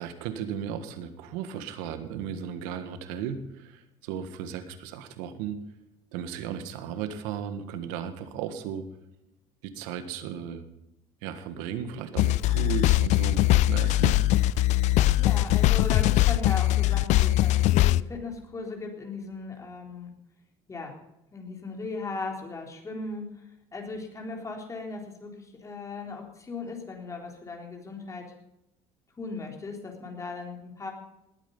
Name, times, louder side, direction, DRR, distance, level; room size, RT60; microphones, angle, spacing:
voice 1, 0.0-5.6 6.1-8.9 9.6-10.6 11.2-14.2, right 8 dB, 90° right, 10 dB, 1.6 m, -35 dB
sound 1, 12.2-18.0, left 16 dB, 65° left, 0.4 m, -21 dB
voice 2, 15.2-20.1 20.7-21.0 21.3-23.3 23.7-28.3 29.2-30.9, left 3 dB, 25° left, 1 dB, 3.8 m, -37 dB
19.5 x 8.9 x 5.4 m, 0.90 s
cardioid pair, 105°, 13 cm